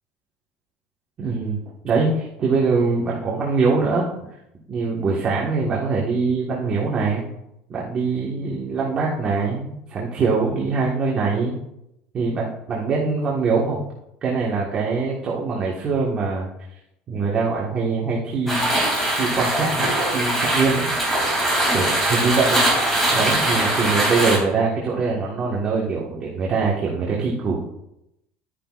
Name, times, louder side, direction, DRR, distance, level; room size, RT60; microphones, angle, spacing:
voice 1, 1.2-1.6 1.8-4.1 4.7-7.2 7.7-11.5 12.1-13.8 14.2-16.5 17.1-18.7 19.2-20.9 21.7-22.6 23.1-27.6, right 4 dB, 25° right, -4 dB, 1.5 m, -23 dB
sound 1, 18.5-24.4, right 1 dB, 5° left, 2.9 m, -21 dB
12.0 x 10.0 x 2.5 m, 0.84 s
cardioid pair, 165°, 4 cm